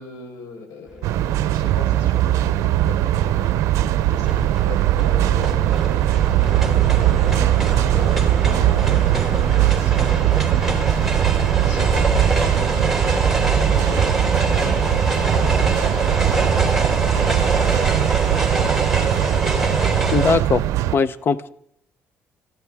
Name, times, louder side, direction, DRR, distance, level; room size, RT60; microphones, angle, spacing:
voice 1, 0.0-3.5 4.1-11.0 11.6-13.2 13.6-18.2 18.6-18.8, left 4 dB, 85° left, 4 dB, 4.5 m, -38 dB
sound 1, 1.0-21.0, right 14 dB, 80° right, 0.5 m, -20 dB
sound 2, 2.9-20.3, right 2 dB, 5° right, 3.2 m, -24 dB
voice 2, 20.1-20.6 20.9-21.5, left 5 dB, 45° left, 16 dB, 0.8 m, -19 dB
24.5 x 14.0 x 3.6 m, 0.70 s
cardioid pair, 95°, 5 cm